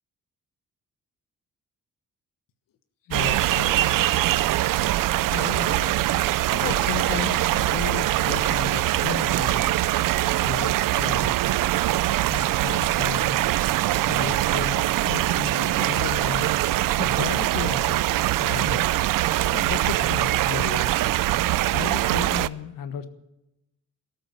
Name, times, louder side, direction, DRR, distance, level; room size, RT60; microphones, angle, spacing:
voice 1, 3.1-4.3 5.3-6.0 6.4-9.8 10.4-11.4 12.3-13.4 14.1-18.1 18.4-19.0 19.5-20.9 21.7-23.1, left 8 dB, 90° left, 10 dB, 1.4 m, -34 dB
sound 1, 3.1-22.5, right 15 dB, 80° right, 0.5 m, -23 dB
14.0 x 13.0 x 6.9 m, 0.91 s
wide cardioid pair, 170°, 32 cm